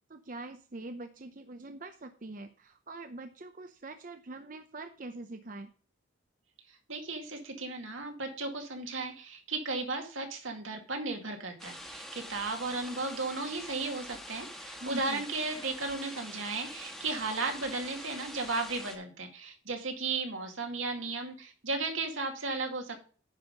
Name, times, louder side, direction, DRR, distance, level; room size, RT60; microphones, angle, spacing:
voice 1, 0.1-5.7 14.7-15.2, right 2 dB, 40° right, 8 dB, 0.6 m, -44 dB
voice 2, 6.7-23.0, right 3 dB, 80° right, 4 dB, 2.2 m, -35 dB
sound 1, 11.6-19.0, left 1 dB, ahead, 1.4 m, -45 dB
9.8 x 5.6 x 5.2 m, 0.40 s
head